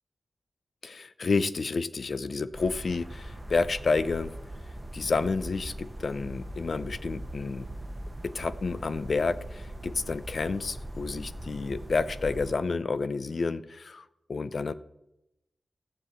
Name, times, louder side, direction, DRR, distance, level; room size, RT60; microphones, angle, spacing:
voice 1, 0.8-4.3 4.9-7.7 8.2-14.0 14.3-14.7, left 4 dB, 50° left, 15 dB, 0.5 m, -30 dB
sound 1, 2.5-12.5, right 1 dB, 15° right, 0.9 m, -40 dB
14.0 x 7.9 x 7.9 m, 0.92 s
wide cardioid pair, 150°, 0 cm